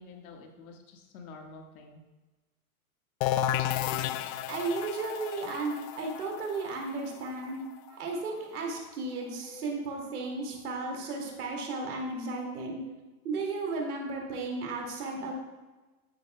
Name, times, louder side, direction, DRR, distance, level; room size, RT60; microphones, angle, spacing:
voice 1, 0.0-2.0 5.2-5.3 9.5-9.7 10.6-10.8 11.2-11.4 11.9-12.0 12.8-12.9 14.8-14.9, left 4 dB, 70° left, 2 dB, 1.6 m, -49 dB
sound 1, 3.2-8.8, left 11 dB, 40° left, 0.4 m, -33 dB
voice 2, 4.5-7.6 7.9-12.8 13.2-15.3, right 3 dB, 80° right, 0 dB, 2.3 m, -34 dB
10.5 x 9.0 x 2.2 m, 1.2 s
hypercardioid pair, 105°, 44 cm